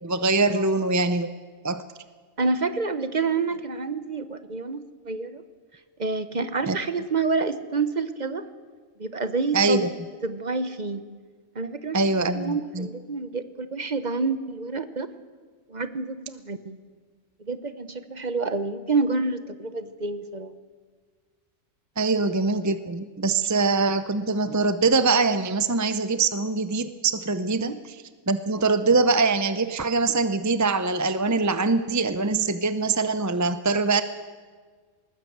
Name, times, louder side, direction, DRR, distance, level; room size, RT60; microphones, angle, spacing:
voice 1, 0.0-1.3 1.6-1.8 6.7-6.8 9.5-9.9 11.9-12.9 22.0-28.0 28.3-34.0, right 3 dB, 20° right, 11 dB, 0.5 m, -23 dB
voice 2, 2.4-5.4 6.0-8.5 9.0-9.8 10.2-11.0 11.5-15.1 15.7-16.8 17.4-20.5 27.6-27.8, right 4 dB, 35° right, 11 dB, 1.1 m, -28 dB
20.0 x 20.0 x 8.0 m, 1.5 s
omnidirectional pair, 1.4 m